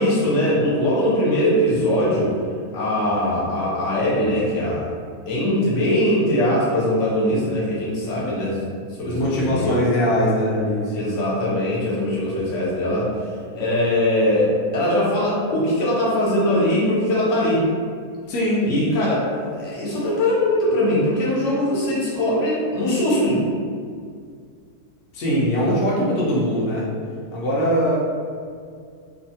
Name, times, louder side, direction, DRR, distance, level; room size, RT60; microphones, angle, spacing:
voice 1, 0.0-2.3 2.7-4.9 5.3-8.6 9.0-9.8 10.9-13.1 13.5-17.6 18.7-23.4 25.7-25.8, left 1 dB, 55° left, -6 dB, 0.9 m, -21 dB
voice 2, 9.0-11.2 18.3-18.8 25.1-26.8 27.3-28.1, equal, 75° left, -6 dB, 0.6 m, -21 dB
2.6 x 2.3 x 2.7 m, 2.2 s
omnidirectional pair, 1.8 m